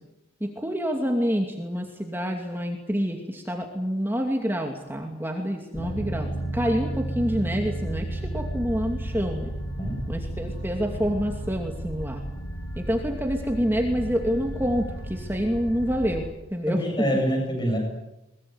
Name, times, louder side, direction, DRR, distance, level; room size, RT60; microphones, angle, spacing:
voice 1, 0.4-9.5 10.1-12.2 12.8-17.1, equal, 10° right, 2 dB, 2.5 m, -27 dB
sound 1, 5.7-16.3, right 1 dB, 70° left, 2.4 m, -33 dB
voice 2, 16.7-17.8, equal, 20° left, 3 dB, 8.0 m, -26 dB
22.5 x 22.0 x 9.7 m, 0.94 s
head